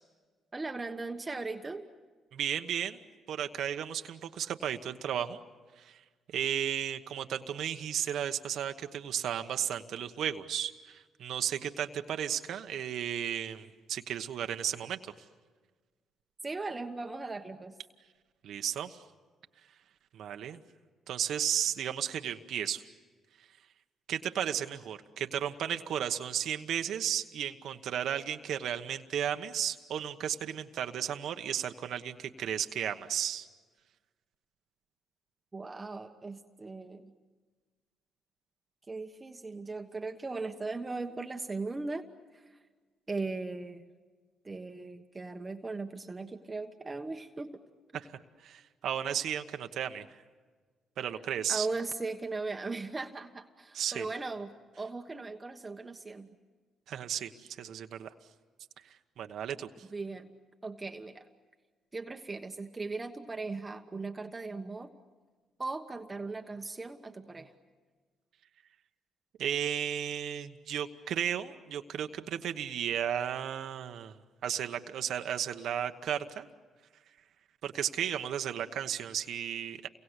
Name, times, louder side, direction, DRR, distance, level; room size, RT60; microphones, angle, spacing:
voice 1, 0.5-1.9 16.4-17.7 35.5-37.1 38.9-42.0 42.3-42.6 43.1-43.9 44.4-47.6 51.5-56.3 59.9-60.3 60.6-61.3 61.9-64.9 65.6-67.5, right 3 dB, 20° right, 5 dB, 1.3 m, -38 dB
voice 2, 2.3-3.0 3.3-5.4 5.8-6.0 6.3-15.1 18.4-19.0 20.1-20.6 21.1-22.9 24.1-33.5 48.4-50.0 51.0-51.7 53.7-54.1 56.9-58.1 59.2-59.7 69.4-74.1 74.4-76.5 77.6-79.9, right 9 dB, 70° right, 7 dB, 1.1 m, -34 dB
29.0 x 23.5 x 8.2 m, 1.4 s
cardioid pair, 90°, 0 cm